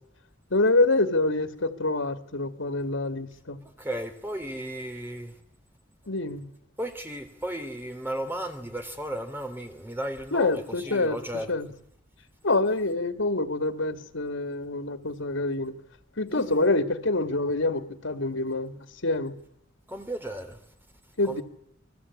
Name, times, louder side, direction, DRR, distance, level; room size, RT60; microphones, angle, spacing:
voice 1, 0.5-3.6 6.1-6.5 10.3-11.2 11.5-11.7 12.4-15.7 16.2-19.4 21.2-21.4, left 2 dB, 90° left, 2.1 m, -26 dB
voice 2, 3.8-5.3 6.8-11.5 16.3-16.6 19.9-20.6 21.3-21.4, right 1 dB, 10° right, 3.4 m, -35 dB
28.0 x 22.0 x 8.6 m
head